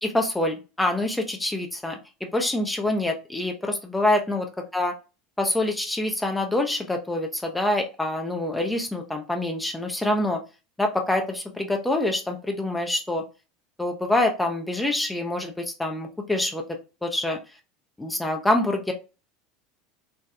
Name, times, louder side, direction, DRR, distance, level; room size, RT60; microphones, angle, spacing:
voice 1, 0.0-4.4 4.7-4.9 5.4-10.4 10.8-13.2 13.8-16.6 17.0-17.4 18.0-18.9, left 1 dB, 10° left, 3 dB, 0.6 m, -26 dB
4.0 x 2.3 x 2.2 m, 0.31 s
figure-of-eight pair, 75°, 0 cm